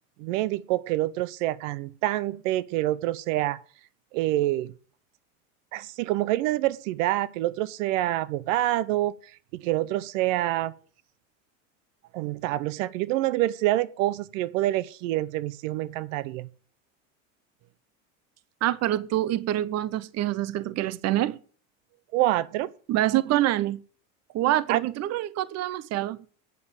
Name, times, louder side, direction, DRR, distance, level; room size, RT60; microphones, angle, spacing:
voice 1, 0.2-3.6 4.1-4.7 5.7-9.1 9.5-10.7 12.1-16.5 22.1-22.7 24.7-24.8, right 15 dB, 75° right, 0.8 m, -26 dB
voice 2, 18.6-21.4 22.9-23.8 24.3-26.2, right 14 dB, 40° right, 0.8 m, -26 dB
9.5 x 7.2 x 8.0 m
supercardioid pair, 115°, 39 cm